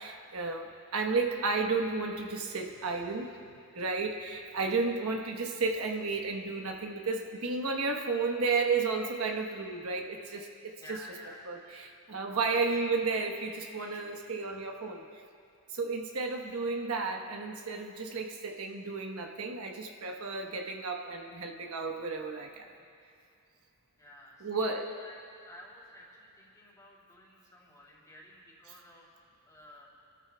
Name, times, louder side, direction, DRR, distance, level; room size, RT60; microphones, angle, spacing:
voice 1, 0.0-3.3 3.7-11.0 11.5-15.0 15.7-22.7 24.4-24.8, right 4 dB, 85° right, 3 dB, 1.1 m, -32 dB
voice 2, 10.8-11.5 12.4-12.7 24.0-29.1 29.4-29.9, equal, 15° left, -4 dB, 2.9 m, -52 dB
26.5 x 13.5 x 2.3 m, 2.4 s
head